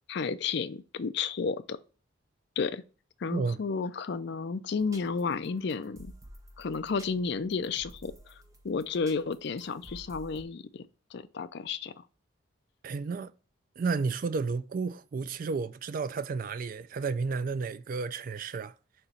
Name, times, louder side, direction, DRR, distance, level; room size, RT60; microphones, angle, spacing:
voice 1, 0.1-1.8 2.6-2.8 3.2-6.1 6.6-8.3 8.6-10.9 11.1-12.0, left 5 dB, 55° left, 0.4 m, -32 dB
sound 1, 4.8-10.4, right 1 dB, 15° right, 0.9 m, -52 dB
voice 2, 12.8-13.3 13.8-18.7, right 4 dB, 40° right, 0.3 m, -32 dB
6.6 x 3.0 x 5.6 m
head